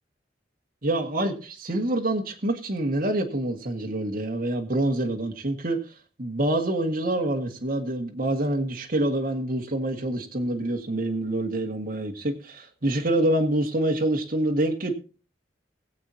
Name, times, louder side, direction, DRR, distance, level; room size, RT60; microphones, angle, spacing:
voice 1, 0.8-5.8 6.2-14.9, right 1 dB, 50° right, 1 dB, 1.8 m, -26 dB
22.0 x 7.8 x 2.8 m, 0.37 s
head